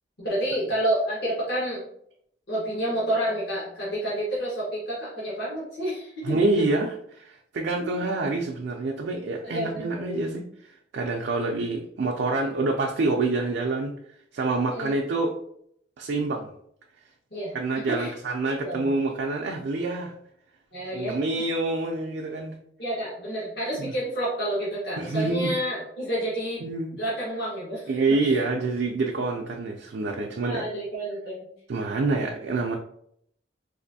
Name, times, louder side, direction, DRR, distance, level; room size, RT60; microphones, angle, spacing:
voice 1, 0.2-1.8 2.5-6.4 7.8-7.9 9.4-10.2 14.7-15.0 17.3-18.1 18.6-18.9 20.7-21.2 22.8-26.6 27.0-27.9 28.2-28.4 30.4-31.5, right 1 dB, 65° left, -7 dB, 1.3 m, -29 dB
voice 2, 6.2-13.9 14.3-15.3 16.0-16.5 17.5-20.1 20.9-22.6 23.7-23.9 25.0-25.5 26.6-27.0 27.9-30.6 31.7-32.8, right 3 dB, 65° right, 1 dB, 0.4 m, -27 dB
4.1 x 2.6 x 2.6 m, 0.69 s
head